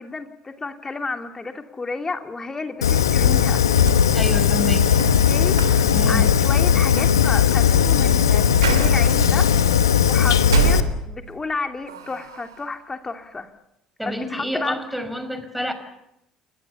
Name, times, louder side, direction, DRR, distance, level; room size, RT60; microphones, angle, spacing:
voice 1, 0.0-3.6 5.3-9.5 10.0-13.5 14.0-14.8, left 3 dB, 25° left, 5 dB, 2.9 m, -31 dB
Fire, 2.8-10.8, left 8 dB, 85° left, 1.2 m, -17 dB
sound 1, 3.7-11.5 11.9-12.7, right 8 dB, 85° right, 2.5 m, -30 dB
voice 2, 4.1-5.0 5.9-6.2 14.0-15.7, right 1 dB, ahead, 9 dB, 5.7 m, -28 dB
28.5 x 21.5 x 7.1 m, 0.84 s
hypercardioid pair, 60°, 2 cm